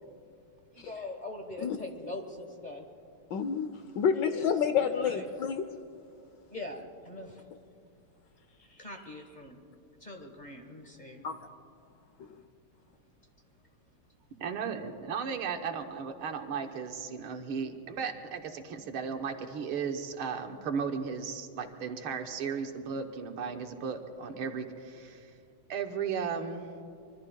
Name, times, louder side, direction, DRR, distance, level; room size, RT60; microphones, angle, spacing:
voice 1, 0.7-2.9 4.1-4.4 4.8-5.3 6.5-7.5 8.6-9.6 10.0-11.3, left 2 dB, 25° left, 3 dB, 1.1 m, -42 dB
voice 2, 3.3-5.6 11.2-11.3, left 7 dB, 70° left, 9 dB, 1.1 m, -29 dB
voice 3, 14.4-25.3 25.7-26.7, right 6 dB, 80° right, 5 dB, 1.9 m, -35 dB
25.5 x 23.0 x 2.3 m, 2.6 s
omnidirectional pair, 2.3 m